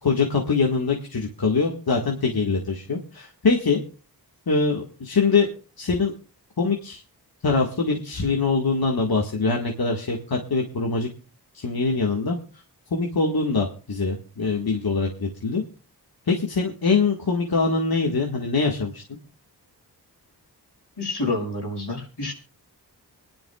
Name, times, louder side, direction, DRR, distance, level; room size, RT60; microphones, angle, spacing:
voice 1, 0.0-3.8 4.5-5.5 5.8-6.1 6.6-7.0 7.4-11.1 11.5-12.4 12.9-15.6 16.3-19.0, left 4 dB, 65° left, 0 dB, 1.8 m, -23 dB
voice 2, 21.0-22.3, left 2 dB, 85° left, -1 dB, 5.6 m, -28 dB
25.5 x 10.5 x 2.3 m, 0.34 s
cardioid pair, 50°, 40 cm